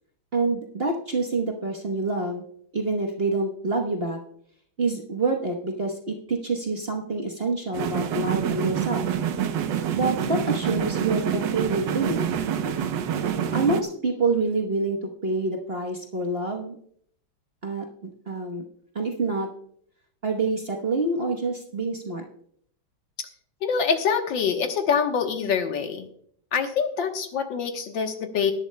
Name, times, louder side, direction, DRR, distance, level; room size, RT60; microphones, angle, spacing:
voice 1, 0.3-2.4 2.7-4.2 4.8-9.0 9.9-12.2 13.5-16.8 17.6-18.6 18.9-19.5 20.2-22.2, right 3 dB, 35° right, 1 dB, 1.1 m, -27 dB
sound 1, 7.7-13.8, right 8 dB, 70° right, 1.4 m, -27 dB
voice 2, 23.6-26.1 26.5-28.5, left 6 dB, 70° left, 5 dB, 1.8 m, -25 dB
19.5 x 11.0 x 2.2 m, 0.63 s
omnidirectional pair, 2.2 m